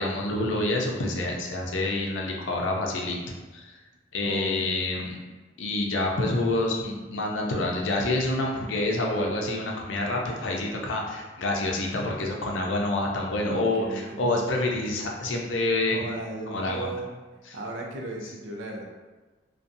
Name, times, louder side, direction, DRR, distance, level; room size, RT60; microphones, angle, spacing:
voice 1, 0.0-3.2 3.5-3.8 4.1-5.2 5.6-16.1 16.5-16.9 17.5-17.6, left 2 dB, 90° left, 0 dB, 0.5 m, -27 dB
voice 2, 4.2-5.1 11.9-12.2 13.5-14.2 15.9-17.1 17.5-18.8, right 2 dB, 75° right, 0 dB, 0.5 m, -36 dB
2.5 x 2.2 x 2.6 m, 1.3 s
head